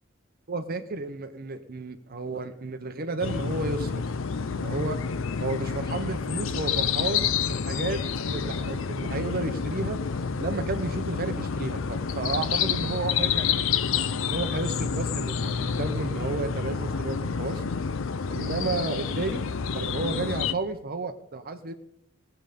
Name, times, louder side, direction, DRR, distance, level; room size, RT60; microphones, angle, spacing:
voice 1, 0.5-4.0 4.5-5.0 5.4-8.0 8.3-10.0 10.4-13.7 14.3-17.6 18.3-19.4 19.7-21.7, right 3 dB, 45° right, 8 dB, 0.8 m, -32 dB
sound 1, 3.2-20.5, left 6 dB, 70° left, 0.6 m, -29 dB
19.0 x 7.9 x 5.1 m, 0.76 s
head